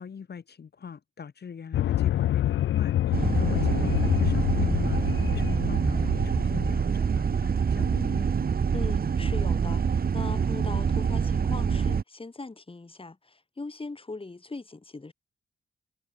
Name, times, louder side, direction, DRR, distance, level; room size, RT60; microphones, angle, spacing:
voice 1, 0.0-8.3, left 6 dB, 60° left, 6.8 m, -42 dB
sound 1, 1.7-6.8, left 12 dB, 90° left, 2.1 m, -27 dB
sound 2, 3.1-12.0, right 6 dB, 50° right, 1.9 m, -26 dB
voice 2, 8.7-15.1, left 3 dB, 30° left, 7.9 m, -40 dB
cardioid pair, 60°, 19 cm